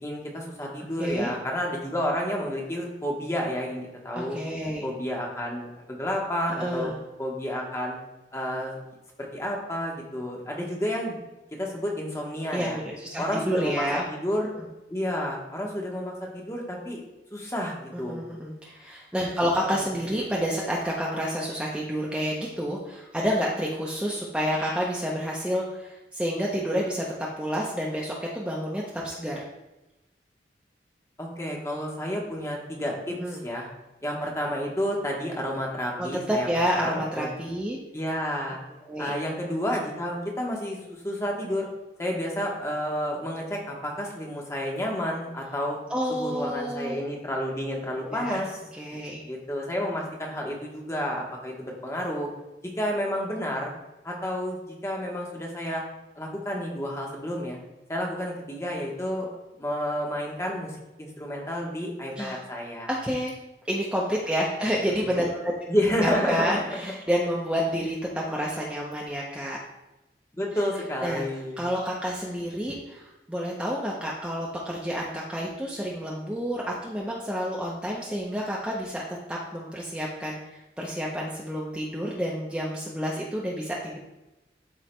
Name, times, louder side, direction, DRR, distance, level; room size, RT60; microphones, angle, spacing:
voice 1, 0.0-4.4 4.8-6.9 7.2-8.0 8.3-8.7 9.3-11.2 11.6-12.8 13.2-14.5 14.9-17.0 17.3-18.2 19.6-19.9 31.2-33.7 34.0-37.3 37.9-38.6 39.0-41.7 42.0-45.8 46.1-48.6 49.2-52.3 52.8-53.8 54.0-54.6 54.8-55.8 56.2-57.6 57.9-59.3 59.5-62.9 64.9-65.1 65.7-66.9 70.3-71.6, equal, 15° left, -1 dB, 1.1 m, -30 dB
voice 2, 1.0-1.3 4.1-4.9 6.6-7.0 12.5-14.0 14.6-14.7 17.9-27.0 27.4-29.4 33.2-33.4 36.0-37.8 38.8-39.1 45.9-47.0 48.0-48.4 48.8-49.2 62.2-62.4 62.9-63.3 63.6-65.5 66.0-69.6 71.0-71.2 71.6-79.0 79.3-84.0, equal, 5° right, -4 dB, 0.6 m, -29 dB
12.0 x 4.6 x 2.2 m, 1.0 s
head